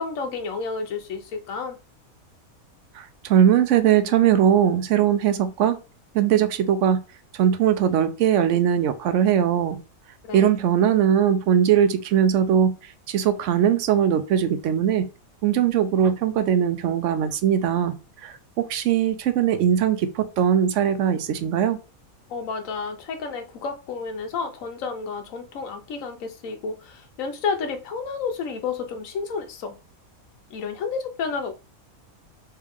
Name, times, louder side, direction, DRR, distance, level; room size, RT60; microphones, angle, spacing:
voice 1, 0.0-1.8 10.2-10.5 22.3-29.8 30.5-31.5, left 5 dB, 70° left, 1.1 m, -31 dB
voice 2, 3.0-5.8 6.1-7.0 7.3-9.8 10.3-12.7 13.1-15.1 15.4-17.9 18.2-21.8, right 9 dB, 70° right, 0.8 m, -20 dB
3.3 x 3.2 x 3.5 m
omnidirectional pair, 1.5 m